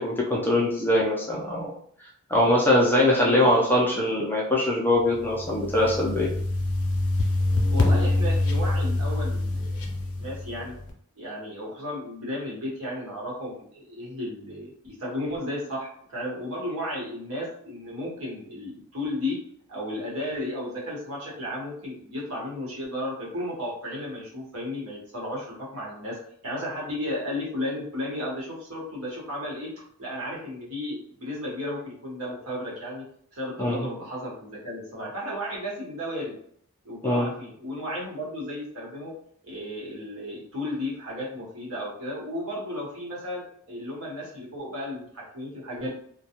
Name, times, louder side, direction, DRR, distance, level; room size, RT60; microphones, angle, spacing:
voice 1, 0.0-1.7 2.3-6.3 33.6-33.9 37.0-37.3, left 1 dB, 10° left, -3 dB, 0.4 m, -22 dB
voice 2, 3.2-3.5 7.7-9.9 10.1-10.7 11.2-19.4 19.7-26.2 26.4-29.7 30.0-33.0 33.3-36.4 36.8-39.1 39.4-45.9, left 1 dB, 75° right, -5 dB, 1.1 m, -34 dB
sound 1, 5.1-10.8, left 2 dB, 75° left, 0.6 m, -25 dB
2.3 x 2.2 x 2.8 m, 0.63 s
head